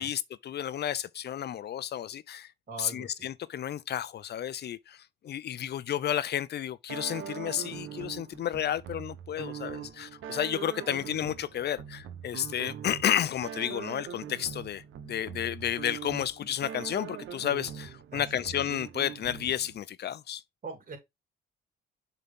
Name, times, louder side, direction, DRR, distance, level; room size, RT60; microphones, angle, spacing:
voice 1, 0.0-2.5 2.8-20.4, left 10 dB, 55° left, 0.7 m, -32 dB
voice 2, 2.7-3.3 10.8-10.9 18.1-18.5 20.6-21.0, right 4 dB, 45° right, 3.6 m, -42 dB
sound 1, 6.9-19.8, right 8 dB, 80° right, 1.1 m, -42 dB
6.9 x 4.0 x 3.6 m
cardioid pair, 90°, 20 cm